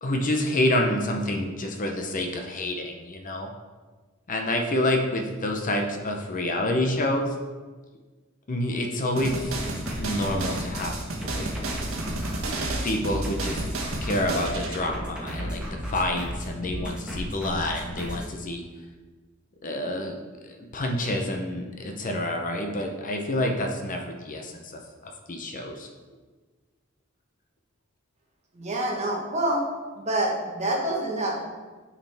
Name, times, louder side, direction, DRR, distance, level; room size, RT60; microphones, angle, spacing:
voice 1, 0.0-3.5 4.3-7.3 8.5-9.6 10.0-11.5 12.8-13.7 14.0-18.6 19.6-25.9, left 1 dB, 40° left, 3 dB, 0.7 m, -28 dB
sound 1, 9.2-14.8, right 2 dB, 80° right, 1.2 m, -33 dB
sound 2, 9.4-18.3, equal, 5° right, 1.4 m, -34 dB
voice 2, 28.5-29.6 30.0-31.5, right 1 dB, 35° right, -1 dB, 1.3 m, -27 dB
8.8 x 4.8 x 3.5 m, 1.3 s
head